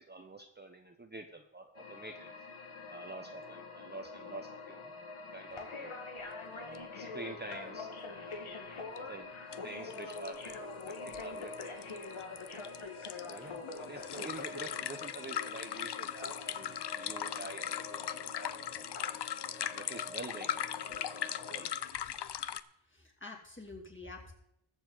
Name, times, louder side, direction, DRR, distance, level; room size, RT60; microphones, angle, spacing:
voice 1, 0.0-2.3 2.9-4.9 5.3-5.9 6.5-8.6 8.9-9.3 9.6-12.1 13.2-19.4 19.7-21.7, right 2 dB, 20° right, 4 dB, 0.8 m, -48 dB
sound 1, 1.7-21.7, left 3 dB, 80° left, 2.0 m, -45 dB
sound 2, 6.8-6.9 7.1-7.2 9.0-9.1 9.5-9.6 9.9-22.6, left 9 dB, 55° left, 0.6 m, -39 dB
voice 2, 22.9-24.3, left 3 dB, 25° left, 0 dB, 2.5 m, -48 dB
21.5 x 7.2 x 3.9 m, 0.80 s
wide cardioid pair, 130°, 49 cm